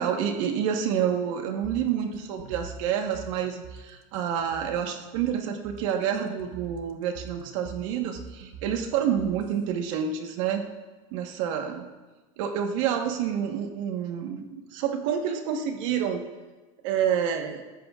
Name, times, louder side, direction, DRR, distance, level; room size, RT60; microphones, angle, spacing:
voice 1, 0.0-10.6 11.1-11.9 12.4-16.2 16.8-17.6, right 8 dB, 65° right, 4 dB, 1.3 m, -28 dB
sound 1, 1.6-9.6, right 6 dB, 45° right, 1.1 m, -44 dB
29.5 x 13.5 x 2.4 m, 1.2 s
supercardioid pair, 170°, 18 cm